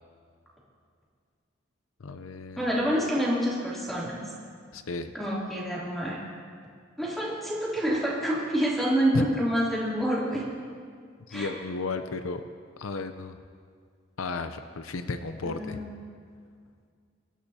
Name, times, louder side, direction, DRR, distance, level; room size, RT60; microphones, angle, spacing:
voice 1, 2.0-2.7 4.7-5.1 9.1-9.2 11.3-12.4 12.8-13.4 14.2-15.8, left 3 dB, 90° left, 8 dB, 0.6 m, -33 dB
voice 2, 2.6-4.2 5.1-6.2 7.0-10.5 11.3-11.5 15.4-15.9, equal, ahead, -7 dB, 3.0 m, -27 dB
24.5 x 13.5 x 2.8 m, 2.1 s
head